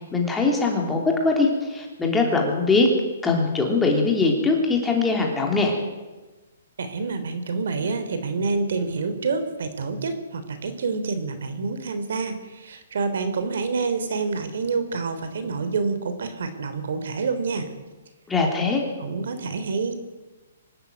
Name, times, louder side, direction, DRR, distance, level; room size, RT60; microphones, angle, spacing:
voice 1, 0.1-2.9 3.2-5.8 18.3-18.8, left 3 dB, 5° left, 1 dB, 3.4 m, -21 dB
voice 2, 6.8-17.7 19.0-20.0, right 4 dB, 65° right, 10 dB, 3.5 m, -27 dB
24.0 x 13.0 x 9.6 m, 1.2 s
hypercardioid pair, 165°, 0 cm